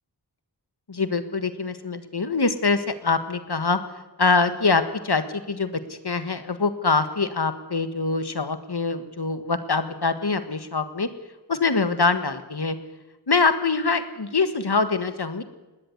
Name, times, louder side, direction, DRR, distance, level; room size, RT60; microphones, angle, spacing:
voice 1, 0.9-3.8 4.2-11.1 11.5-12.8 13.3-15.4, left 4 dB, 70° left, 10 dB, 1.7 m, -24 dB
19.5 x 18.0 x 9.6 m, 1.1 s
wide cardioid pair, 50°, 42 cm